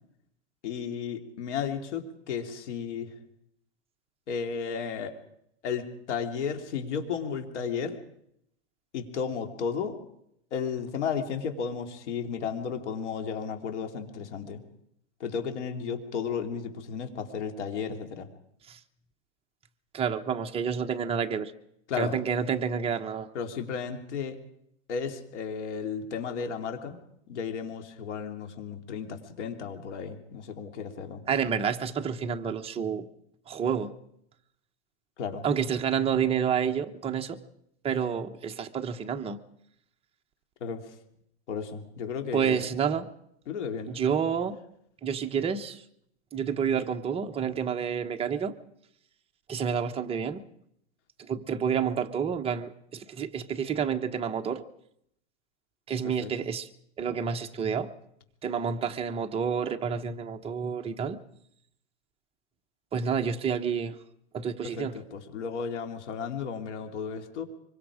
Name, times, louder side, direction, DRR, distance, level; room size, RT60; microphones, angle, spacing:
voice 1, 0.6-3.1 4.3-5.1 5.6-8.0 8.9-10.0 10.5-14.6 15.2-18.3 21.9-22.2 23.3-24.4 24.9-27.0 27.3-31.2 35.2-35.4 40.6-40.9 41.5-42.7 43.5-43.9 56.0-56.3 64.6-67.5, left 6 dB, 80° left, 5 dB, 3.2 m, -34 dB
voice 2, 19.9-21.5 22.0-23.3 31.3-33.1 33.5-33.9 35.4-37.4 37.8-39.4 42.3-43.1 43.9-44.6 45.0-45.8 46.3-48.5 49.5-50.4 51.2-54.6 55.9-56.7 57.0-57.9 58.4-61.2 62.9-64.0 64.3-65.0, right 7 dB, 15° right, 5 dB, 1.0 m, -29 dB
25.0 x 23.5 x 5.0 m, 0.75 s
supercardioid pair, 145°, 34 cm